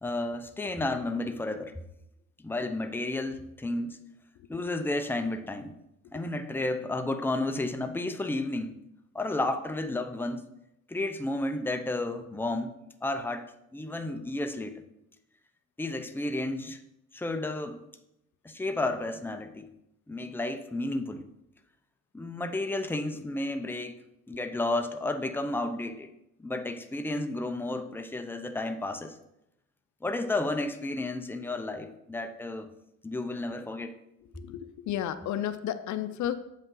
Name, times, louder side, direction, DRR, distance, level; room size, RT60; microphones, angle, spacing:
voice 1, 0.0-1.8 2.4-4.0 4.5-5.7 6.1-8.8 9.1-10.4 10.9-12.7 13.0-14.8 15.8-16.8 17.1-17.8 18.4-19.7 20.1-21.2 22.1-24.0 24.3-26.1 26.4-29.2 30.0-32.7 33.0-33.9, left 2 dB, 5° left, 7 dB, 0.6 m, -32 dB
voice 2, 34.3-36.4, left 10 dB, 70° left, 12 dB, 0.5 m, -33 dB
7.7 x 5.3 x 3.8 m, 0.83 s
cardioid pair, 90°, 30 cm